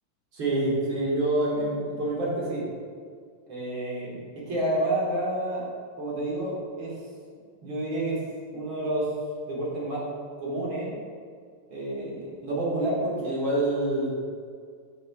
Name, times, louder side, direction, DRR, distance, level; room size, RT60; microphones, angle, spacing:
voice 1, 0.3-2.6 3.5-5.7 6.0-7.0 7.6-8.2 8.5-9.1 9.5-10.1 10.4-10.9 11.7-14.2, right 1 dB, 90° right, -6 dB, 2.7 m, -28 dB
7.6 x 2.9 x 6.1 m, 2.1 s
omnidirectional pair, 2.2 m